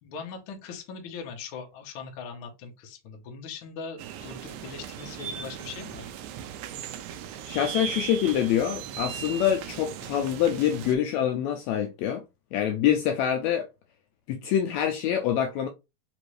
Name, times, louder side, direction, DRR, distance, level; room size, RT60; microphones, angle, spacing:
voice 1, 0.0-6.1, left 5 dB, 65° left, 1.3 m, -40 dB
sound 1, 4.0-11.0, right 9 dB, 80° right, 2.0 m, -38 dB
voice 2, 7.5-12.2 12.5-13.7 14.3-15.7, left 10 dB, 80° left, 1.7 m, -25 dB
5.1 x 2.6 x 3.1 m
omnidirectional pair, 3.5 m